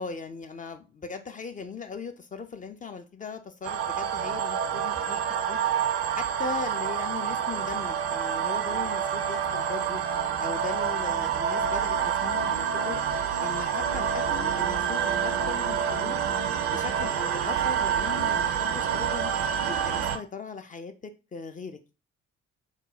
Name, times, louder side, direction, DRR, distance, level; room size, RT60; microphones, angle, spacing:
voice 1, 0.0-10.0 10.4-13.0 13.4-16.2 16.7-19.3 19.6-21.9, left 5 dB, 25° left, 0.5 m, -39 dB
sound 1, 3.6-20.2, right 8 dB, 40° right, 0.6 m, -27 dB
3.9 x 2.1 x 3.9 m
figure-of-eight pair, 45°, 36 cm